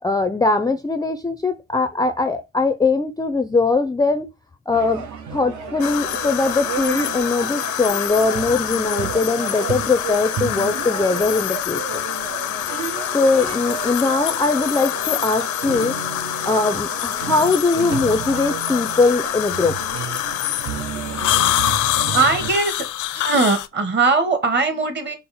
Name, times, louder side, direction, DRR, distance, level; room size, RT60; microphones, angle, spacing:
voice 1, 0.0-4.3 4.7-12.0 13.1-19.8, left 3 dB, 15° left, 0.4 m, -21 dB
sound 1, 4.7-22.5, right 6 dB, 70° right, 1.0 m, -32 dB
sound 2, 5.8-23.7, left 14 dB, 75° left, 0.5 m, -26 dB
voice 2, 22.1-22.9 23.1-25.2, right 4 dB, 35° right, 1.3 m, -20 dB
5.4 x 2.0 x 4.2 m
cardioid pair, 90°, 30 cm